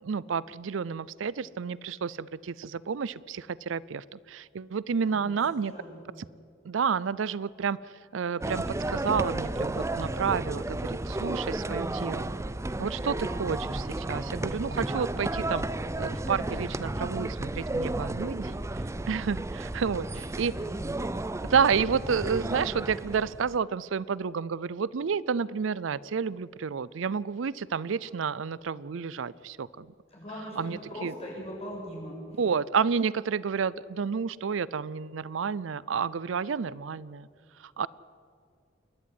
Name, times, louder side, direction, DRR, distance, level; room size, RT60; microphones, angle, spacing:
voice 1, 0.0-5.7 6.6-7.8 8.1-12.3 12.8-15.6 16.0-18.6 19.1-20.1 20.4-20.5 21.4-29.9 30.6-31.1 32.4-37.3 37.6-37.9, right 6 dB, 75° right, 21 dB, 0.5 m, -30 dB
voice 2, 5.0-6.2 11.7-12.0 14.1-14.5 20.0-20.7 21.0-21.1 30.1-32.4, equal, 35° left, -3 dB, 7.7 m, -42 dB
sound 1, 8.4-23.6, right 2 dB, 15° right, 0.5 m, -33 dB
28.5 x 11.0 x 9.5 m, 2.2 s
head